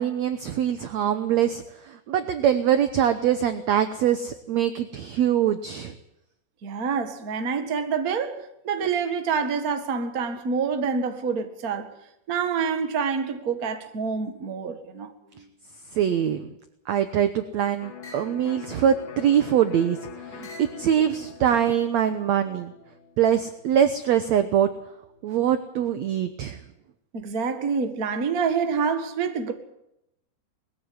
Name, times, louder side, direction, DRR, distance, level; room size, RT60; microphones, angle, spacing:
voice 1, 0.0-5.9 15.9-16.5 16.9-22.7 23.2-24.7 25.2-26.6, right 9 dB, 75° right, 1.7 m, -23 dB
voice 2, 6.6-8.4 8.6-11.9 12.3-15.1 27.1-29.5, right 5 dB, 40° right, 1.4 m, -27 dB
Electric guitar, 17.8-25.5, left 7 dB, 60° left, 3.0 m, -44 dB
sound 1, 18.0-18.4 19.1-19.8 20.4-20.8 21.7-22.3, equal, 15° left, 5.8 m, -49 dB
21.0 x 15.0 x 9.6 m
omnidirectional pair, 4.4 m